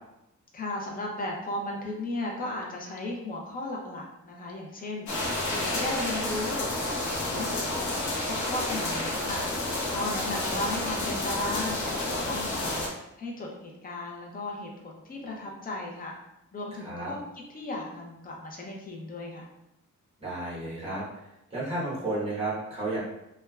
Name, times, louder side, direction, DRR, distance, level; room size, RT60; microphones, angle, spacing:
voice 1, 0.5-5.1 5.4-12.9 13.2-16.1 16.5-19.5, left 2 dB, 30° left, -1 dB, 0.5 m, -36 dB
sound 1, 5.1-12.9, left 2 dB, 65° left, 0.7 m, -30 dB
voice 2, 16.8-17.1 20.2-21.0 21.5-23.0, right 2 dB, 20° right, -7 dB, 1.0 m, -32 dB
3.1 x 2.2 x 2.2 m, 0.86 s
wide cardioid pair, 165°, 30 cm